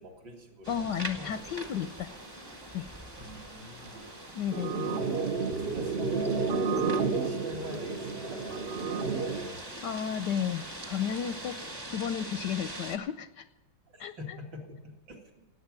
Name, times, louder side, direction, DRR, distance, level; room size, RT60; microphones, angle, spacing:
voice 1, 0.0-0.8 1.1-1.3 3.2-4.0 4.8-9.6 10.4-10.5 13.9-15.4, left 1 dB, 55° right, 0 dB, 3.0 m, -44 dB
sound 1, 0.6-13.0, right 1 dB, 15° right, 1.1 m, -44 dB
voice 2, 0.7-2.2 2.7-2.9 4.3-4.9 9.8-11.6 11.9-13.4 14.0-14.1, left 8 dB, 70° left, 11 dB, 1.1 m, -33 dB
sound 2, 1.3-11.8, right 1 dB, 90° right, 7.4 m, -52 dB
sound 3, 4.5-9.5, right 4 dB, 70° right, 0.5 m, -30 dB
18.0 x 8.7 x 7.5 m, 1.1 s
omnidirectional pair, 2.3 m